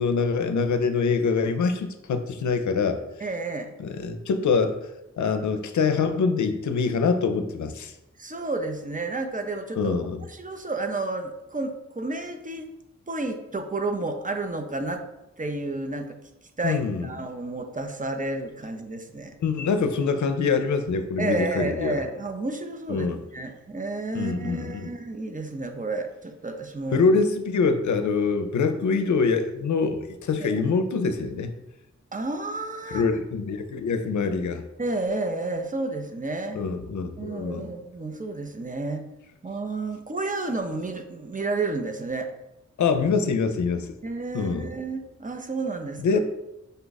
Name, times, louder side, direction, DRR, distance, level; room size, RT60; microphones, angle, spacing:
voice 1, 0.0-3.0 3.8-4.8 5.2-7.9 9.7-10.2 16.6-17.1 19.4-22.0 22.9-23.2 24.1-24.9 26.9-31.5 32.9-34.6 36.5-37.7 42.8-43.9 44.3-44.7 46.0-46.2, left 5 dB, 80° left, 8 dB, 0.5 m, -24 dB
voice 2, 3.2-3.7 8.2-9.9 10.3-12.7 13.1-15.0 15.4-16.2 16.6-19.3 21.2-23.1 23.3-27.0 30.5-30.6 32.1-33.1 34.8-36.6 37.2-39.0 39.4-42.3 44.0-46.2, right 2 dB, 30° right, 5 dB, 0.5 m, -31 dB
5.4 x 2.3 x 4.0 m, 0.90 s
cardioid pair, 60°, 29 cm